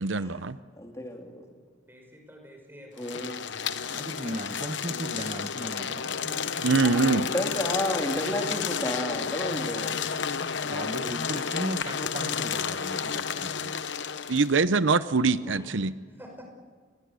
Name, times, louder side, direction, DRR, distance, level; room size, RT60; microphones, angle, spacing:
voice 1, 0.0-0.6 6.6-7.3 14.3-15.9, right 4 dB, 80° right, 14 dB, 0.8 m, -23 dB
voice 2, 0.8-1.4 3.0-3.5 6.8-10.0 10.6-10.9 13.4-13.5 15.4-15.6, left 1 dB, 15° left, 2 dB, 3.0 m, -32 dB
voice 3, 1.9-3.3 15.7-15.9 16.1-16.5, equal, 10° right, 2 dB, 5.4 m, -48 dB
sound 1, 3.0-14.5, left 6 dB, 70° left, 0.9 m, -31 dB
voice 4, 3.6-7.1 10.7-13.7, right 1 dB, 30° right, 5 dB, 1.2 m, -37 dB
30.0 x 22.0 x 8.3 m, 1.5 s
head